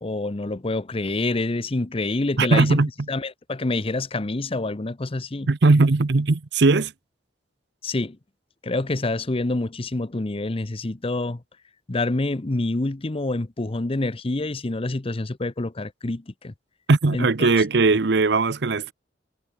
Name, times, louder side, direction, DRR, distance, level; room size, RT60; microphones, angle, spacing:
voice 1, 0.0-2.8 3.1-5.5 7.8-8.2 8.6-11.4 11.9-16.5 17.1-17.5, left 2 dB, 30° left, 0.8 m, -27 dB
voice 2, 2.4-2.9 5.5-6.9 16.9-18.9, right 3 dB, 65° right, 0.8 m, -19 dB
head